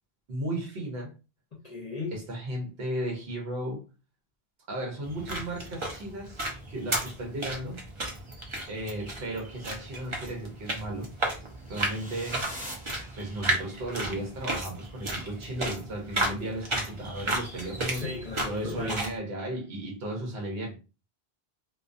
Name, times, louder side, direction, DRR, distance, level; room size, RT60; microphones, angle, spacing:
voice 1, 0.3-1.1 2.1-3.8 4.7-7.8 8.7-11.1 11.7-12.4 13.2-18.1 18.5-20.8, right 1 dB, 75° right, 1.0 m, -35 dB
voice 2, 1.5-2.2 17.8-19.0, left 3 dB, 45° left, 0.7 m, -36 dB
sound 1, 5.0-19.2, right 1 dB, 35° right, 0.6 m, -34 dB
sound 2, 11.6-13.8, equal, 10° right, 0.8 m, -44 dB
2.4 x 2.2 x 2.5 m
omnidirectional pair, 1.0 m